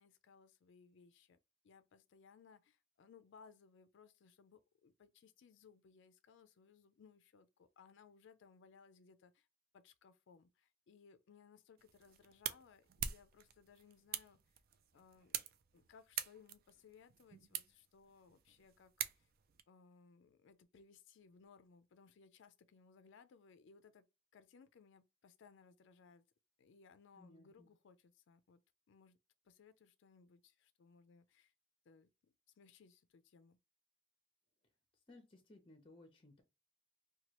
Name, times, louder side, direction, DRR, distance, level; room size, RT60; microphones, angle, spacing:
voice 1, 0.0-1.4 1.6-9.5 9.7-14.4 14.9-15.4 15.7-19.3 19.7-24.0 24.3-26.2 26.6-28.6 28.9-29.2 29.4-31.5 31.9-33.6, left 5 dB, 65° left, 0.4 m, -64 dB
sound 1, 11.8-19.6, right 9 dB, 50° right, 0.4 m, -46 dB
voice 2, 27.1-27.7 34.9-36.4, left 2 dB, 25° left, 0.6 m, -61 dB
2.9 x 2.2 x 2.9 m
head